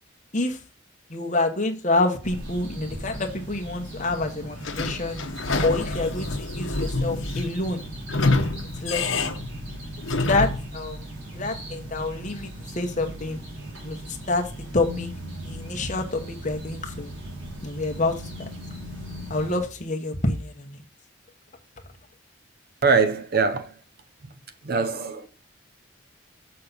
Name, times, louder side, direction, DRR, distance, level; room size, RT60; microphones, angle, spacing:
voice 1, 1.1-5.2 5.6-7.8 8.8-9.4 10.3-11.0 11.3-13.4 13.8-15.1 15.4-17.1 17.6-18.5 19.3-20.8, left 2 dB, 40° left, 1.1 m, -27 dB
sound 1, 2.2-19.6, right 1 dB, 70° right, 3.1 m, -38 dB
Sliding door / Squeak, 4.6-10.7, left 2 dB, 75° left, 0.9 m, -27 dB
voice 2, 22.8-23.7 24.6-25.3, right 5 dB, 50° right, 0.8 m, -22 dB
6.6 x 5.7 x 4.1 m
head